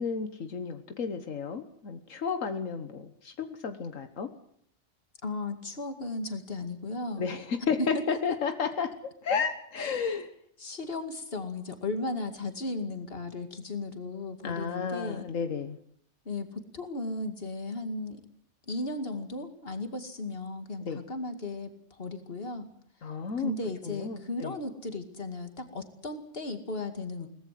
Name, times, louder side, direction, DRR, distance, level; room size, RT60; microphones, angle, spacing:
voice 1, 0.0-4.3 7.2-8.9 9.2-10.3 14.4-15.8 20.8-21.0 23.0-23.5 23.8-24.5, left 6 dB, 85° left, 7 dB, 1.7 m, -32 dB
voice 2, 5.2-7.3 7.8-8.0 9.8-10.2 10.6-15.2 16.3-18.2 18.7-22.7 23.4-27.3, left 2 dB, 50° left, 6 dB, 2.5 m, -35 dB
22.5 x 19.0 x 7.6 m, 0.66 s
omnidirectional pair, 1.3 m